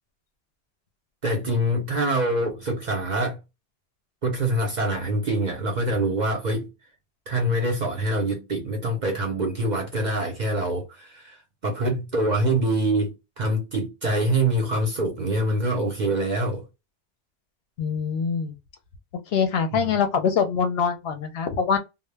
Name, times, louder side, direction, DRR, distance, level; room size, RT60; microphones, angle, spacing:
voice 1, 1.2-3.4 4.2-6.7 7.3-16.6 19.7-19.9, right 1 dB, 50° right, 0.6 m, -25 dB
voice 2, 17.8-18.5 19.3-21.8, left 6 dB, 65° left, 0.8 m, -24 dB
2.0 x 2.0 x 3.2 m
omnidirectional pair, 1.2 m